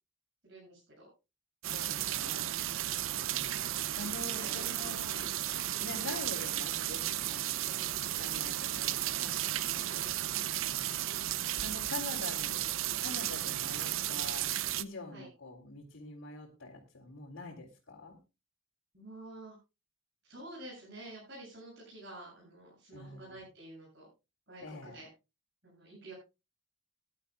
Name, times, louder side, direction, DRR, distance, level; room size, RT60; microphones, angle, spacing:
voice 1, 0.4-1.1 1.9-2.2 2.8-3.1 4.2-5.3 7.7-8.0 9.8-10.1 15.1-15.3 18.9-19.6 20.3-24.1 24.5-25.1 25.6-26.1, right 1 dB, 55° right, -5 dB, 7.6 m, -49 dB
sound 1, 1.6-14.8, right 13 dB, 85° right, 0.6 m, -34 dB
voice 2, 1.7-2.5 3.1-5.3 5.8-9.3 10.7-11.2 11.6-12.7 13.0-14.5 14.8-18.2 22.9-23.4 24.6-25.0, left 3 dB, 85° left, -5 dB, 2.8 m, -45 dB
20.5 x 11.5 x 2.3 m, 0.27 s
head